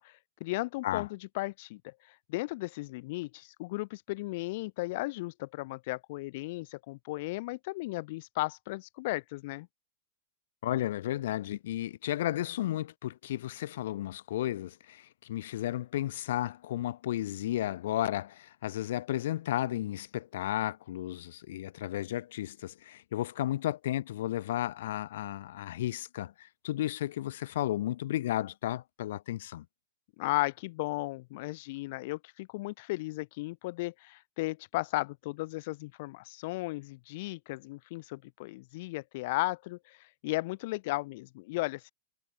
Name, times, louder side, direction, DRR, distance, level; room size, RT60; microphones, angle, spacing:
voice 1, 0.0-9.7 30.2-41.9, left 21 dB, 45° left, 1.7 m, -35 dB
voice 2, 10.6-29.7, left 13 dB, 60° left, 5.4 m, -33 dB
supercardioid pair, 165°, 0 cm